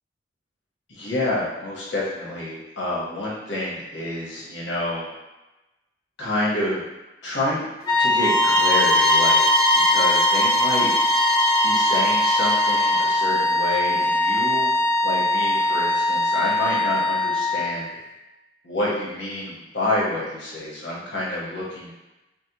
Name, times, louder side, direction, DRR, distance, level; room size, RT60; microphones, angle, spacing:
voice 1, 0.9-5.1 6.2-6.8 7.2-7.7 8.0-9.4 9.9-10.9 11.6-14.7 15.0-17.9 18.6-21.9, left 1 dB, 85° left, -5 dB, 1.3 m, -28 dB
sound 1, 7.8-17.8, left 2 dB, 25° left, 0.8 m, -22 dB
sound 2, 8.2-13.1, right 2 dB, 15° right, 0.4 m, -22 dB
5.1 x 2.2 x 2.9 m, 1.0 s
head